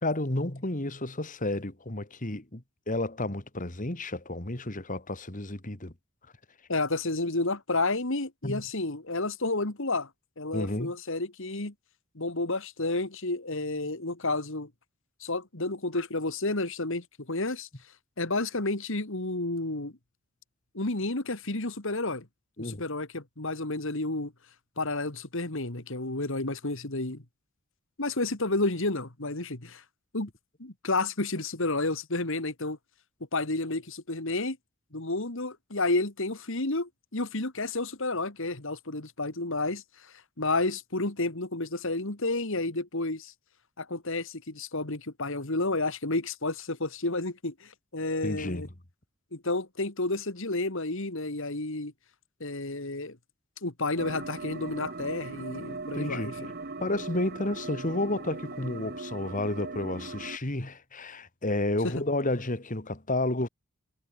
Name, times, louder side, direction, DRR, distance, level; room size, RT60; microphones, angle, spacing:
voice 1, 0.0-5.9 8.4-8.6 10.5-10.9 22.6-22.8 48.2-48.6 55.9-56.3 56.8-63.5, left 1 dB, 35° left, 2.2 m, -31 dB
voice 2, 6.7-10.1 10.4-11.7 12.1-14.7 15.2-17.7 18.2-19.9 20.7-22.3 22.6-24.3 24.8-27.2 28.0-29.8 30.1-30.3 30.6-32.8 33.3-34.6 34.9-39.8 40.4-43.3 43.8-48.7 49.3-51.9 52.4-53.2 53.6-56.5 61.8-61.9, left 2 dB, 60° left, 2.4 m, -31 dB
sound 1, 54.0-60.4, right 3 dB, 45° right, 1.3 m, -39 dB
head